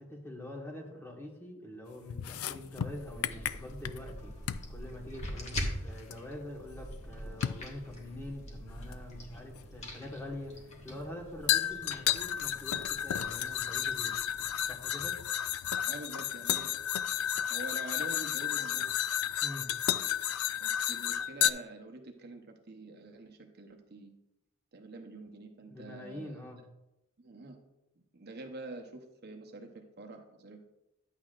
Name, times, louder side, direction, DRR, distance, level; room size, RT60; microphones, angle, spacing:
voice 1, 0.0-14.2 14.7-15.2 19.4-19.7 25.7-26.6, left 1 dB, 10° left, -1 dB, 1.4 m, -45 dB
sound 1, 2.1-4.1 4.5-4.7 6.1-6.2 7.4-7.7 8.9-9.0 11.5-21.5, left 11 dB, 80° left, 0.4 m, -32 dB
sound 2, 2.7-14.9, equal, 30° left, 1.5 m, -44 dB
voice 2, 15.9-16.7 17.5-18.9 20.6-24.1 24.7-26.4 27.2-27.6 28.1-30.7, right 2 dB, 50° right, 3 dB, 0.8 m, -46 dB
10.5 x 8.2 x 2.5 m, 0.93 s
head